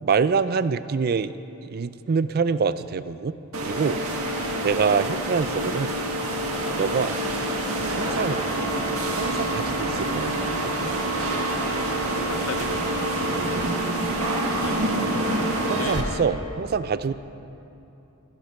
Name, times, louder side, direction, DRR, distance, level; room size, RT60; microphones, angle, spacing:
voice 1, 0.0-1.3 1.6-3.3 3.6-4.0 4.6-6.0 6.7-7.2 8.0-8.4 9.1-10.3 10.8-11.0 13.3-13.6 15.7-17.1, right 5 dB, 45° right, 14 dB, 0.4 m, -25 dB
sound 1, 3.5-16.0, right 1 dB, 85° right, 1.7 m, -26 dB
voice 2, 4.3-5.0 12.1-13.1 14.3-16.0, left 5 dB, 85° left, 9 dB, 0.8 m, -39 dB
13.5 x 12.0 x 5.7 m, 2.9 s
head